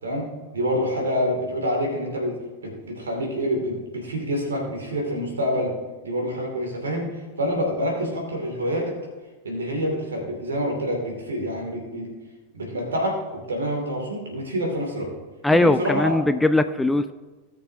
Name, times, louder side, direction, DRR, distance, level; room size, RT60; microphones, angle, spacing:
voice 1, 0.5-2.4 2.6-5.7 6.0-9.0 9.4-12.1 12.5-15.1 15.5-16.1, equal, 70° right, 0 dB, 2.6 m, -27 dB
voice 2, 15.4-17.1, left 2 dB, 5° left, 10 dB, 0.4 m, -20 dB
17.5 x 6.6 x 2.8 m, 1.3 s
figure-of-eight pair, 90°, 0 cm